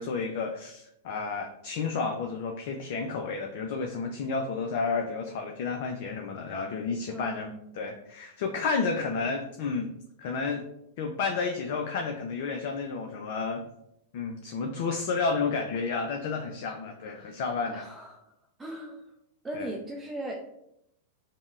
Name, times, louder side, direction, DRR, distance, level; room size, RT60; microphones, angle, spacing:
voice 1, 0.0-9.9 10.2-10.6 11.0-13.6 14.1-17.9 19.5-19.7, left 4 dB, 55° left, 4 dB, 0.4 m, -31 dB
voice 2, 7.1-7.8 17.7-18.2 18.6-19.1 19.4-20.6, right 1 dB, 15° right, 0 dB, 0.4 m, -38 dB
5.3 x 2.1 x 2.3 m, 0.79 s
figure-of-eight pair, 95°, 0 cm